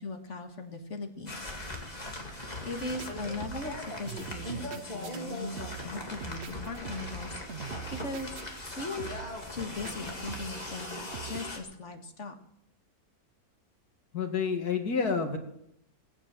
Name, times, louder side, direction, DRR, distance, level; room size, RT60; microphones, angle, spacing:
voice 1, 0.0-1.5 2.4-5.6 5.8-8.3 8.8-9.2 9.5-12.4, left 3 dB, 50° left, 5 dB, 2.0 m, -39 dB
sound 1, 1.3-11.6, left 1 dB, 25° left, 2.5 m, -39 dB
sound 2, 2.8-3.1 3.4-3.8 4.1-5.2 5.6-5.9 6.2-7.2 7.5-8.7 9.0-9.4 9.8-10.7 11.1-11.4, right 9 dB, 50° right, 1.0 m, -43 dB
voice 2, 14.1-15.4, left 5 dB, 90° left, 4 dB, 2.6 m, -29 dB
19.5 x 9.0 x 7.7 m, 0.76 s
omnidirectional pair, 1.6 m